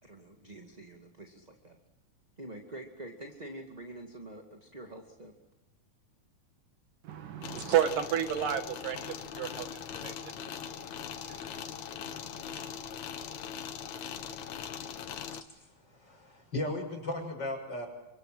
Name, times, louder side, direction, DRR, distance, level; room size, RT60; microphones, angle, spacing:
voice 1, 0.0-1.7 2.4-5.3, right 1 dB, 15° right, 3 dB, 1.8 m, -46 dB
voice 2, 7.0-9.7 9.9-10.4 11.2-11.6 12.0-12.7, right 10 dB, 85° right, 8 dB, 3.3 m, -32 dB
sound 1, 7.4-15.4, left 8 dB, 65° left, 2.5 m, -41 dB
voice 3, 15.2-17.9, left 1 dB, 30° left, 4 dB, 6.9 m, -37 dB
28.0 x 26.0 x 7.8 m, 0.95 s
omnidirectional pair, 3.7 m